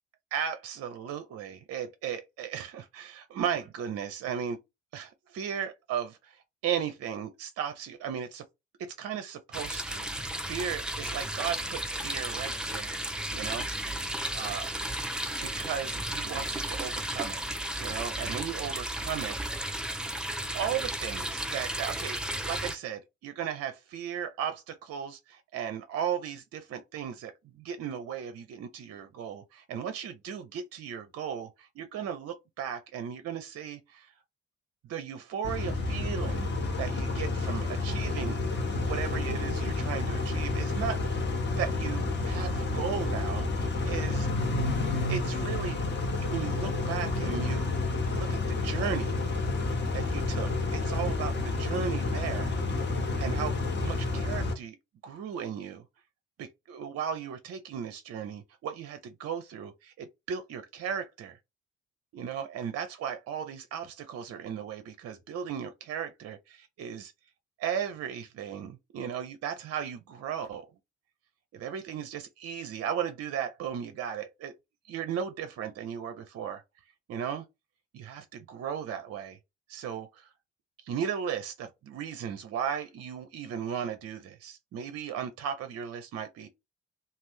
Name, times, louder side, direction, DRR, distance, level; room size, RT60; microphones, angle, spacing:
voice 1, 0.3-4.6 4.9-8.4 8.8-13.0 13.3-13.7 14.3-14.7 15.4-17.4 17.8-19.7 20.5-34.1 34.8-38.4 38.8-44.3 45.1-45.8 46.2-47.7 48.0-49.2 49.9-54.8 55.0-55.8 56.4-61.4 62.1-67.1 67.6-70.7 71.5-74.5 74.9-76.6 77.1-77.5 77.9-79.4 79.7-80.3 80.8-86.5, right 8 dB, 45° right, 0.6 m, -36 dB
sound 1, 9.5-22.8, right 1 dB, ahead, 0.4 m, -34 dB
Car / Idling / Accelerating revving vroom, 35.4-54.5, left 3 dB, 30° left, 0.8 m, -30 dB
2.6 x 2.1 x 3.4 m
figure-of-eight pair, 40°, 35 cm